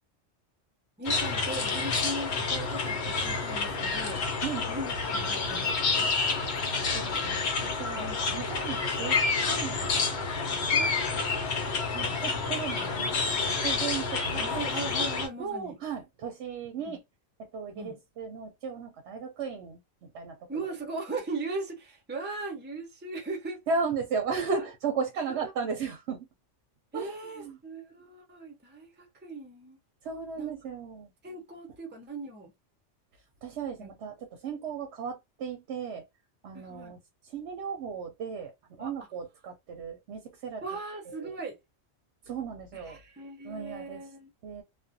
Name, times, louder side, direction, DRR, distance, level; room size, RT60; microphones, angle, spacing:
sound 1, 1.0-15.3, left 4 dB, 60° left, 0.9 m, -29 dB
voice 1, 1.0-4.2 4.7-6.1 8.0-8.2 10.7-11.2 14.3-15.7 16.8-17.0 17.8-18.0 20.5-23.6 25.3-25.5 26.9-29.8 30.4-30.5 31.2-32.5 33.8-33.9 36.5-37.0 38.8-38.9 40.6-41.6 42.7-44.3, right 3 dB, 15° right, 0.4 m, -38 dB
voice 2, 6.8-10.2 10.5-10.9 11.9-14.6 15.4-17.0 17.5-20.4 23.7-26.3 26.9-27.6 30.0-31.1 33.4-36.0 36.4-37.0 37.2-40.6 41.1-41.4 42.3-43.0 43.4-44.1 44.4-44.6, right 5 dB, 65° right, 0.8 m, -36 dB
2.4 x 2.1 x 2.6 m
omnidirectional pair, 1.3 m